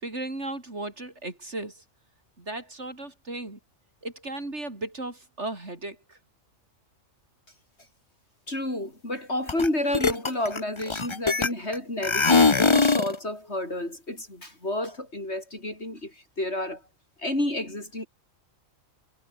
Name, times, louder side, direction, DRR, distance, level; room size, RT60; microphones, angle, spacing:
voice 1, 0.0-1.8 2.4-3.6 4.0-6.2, right 2 dB, 55° right, 4.8 m, -36 dB
voice 2, 8.5-16.8 17.2-18.1, left 1 dB, 55° left, 7.7 m, -30 dB
sound 1, 9.5-9.7 9.9-11.7 12.0-13.1, left 4 dB, 25° left, 0.9 m, -21 dB
omnidirectional pair, 1.4 m